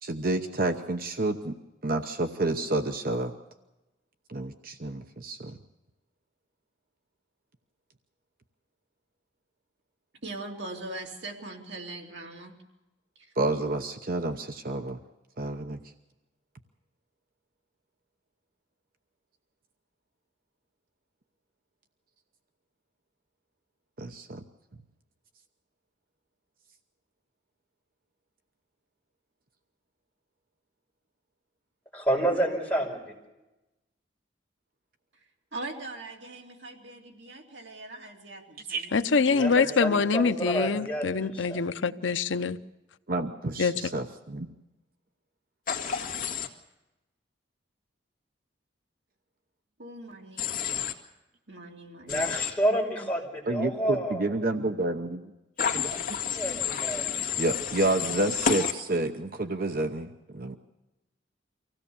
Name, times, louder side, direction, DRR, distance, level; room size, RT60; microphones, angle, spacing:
voice 1, 0.0-1.6 1.8-3.3 4.3-5.6 13.4-15.0 15.4-15.8 24.0-24.4 38.7-38.9 43.1-44.5 53.5-55.3 55.7-56.0 56.5-56.6 57.4-60.6, right 2 dB, 50° right, 0.9 m, -29 dB
voice 2, 10.2-12.6 13.2-13.3 35.5-40.0 49.8-50.4 51.5-52.3, right 2 dB, 65° right, 2.8 m, -41 dB
voice 3, 31.9-33.1 39.3-41.6 52.1-54.3 55.8-57.3, right 1 dB, 5° left, 5.4 m, -29 dB
voice 4, 38.9-42.6 43.6-43.7, left 5 dB, 85° left, 0.7 m, -25 dB
Human voice / Train, 45.7-46.5 50.4-50.9 52.1-52.5 55.6-58.7, left 7 dB, 50° left, 1.9 m, -30 dB
25.0 x 16.5 x 7.1 m
head